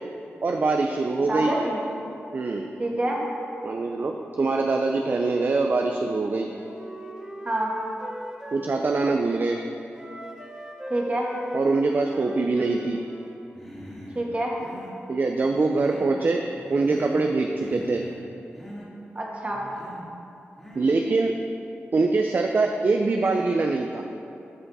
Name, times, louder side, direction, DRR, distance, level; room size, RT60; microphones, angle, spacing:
voice 1, 0.4-1.5 2.3-2.7 3.6-6.5 8.5-9.6 11.5-13.0 15.1-18.0 20.7-21.3 21.9-24.0, right 3 dB, 45° right, 3 dB, 0.5 m, -23 dB
voice 2, 1.3-1.8 2.8-3.2 7.4-7.7 10.9-11.3 14.1-14.6 19.1-19.6, right 1 dB, 30° right, -2 dB, 1.6 m, -26 dB
Wind instrument woodwind instrument, 6.5-9.5 9.9-13.4, right 1 dB, 15° right, 0.9 m, -40 dB
Human voice, 13.5-14.2 14.5-15.0 15.5-16.2 16.5-17.3 17.5-18.2 18.5-18.9 19.5-20.1 20.6-21.0, equal, 10° left, 2.1 m, -42 dB
13.0 x 5.8 x 4.1 m, 2.8 s
wide cardioid pair, 120°, 4 cm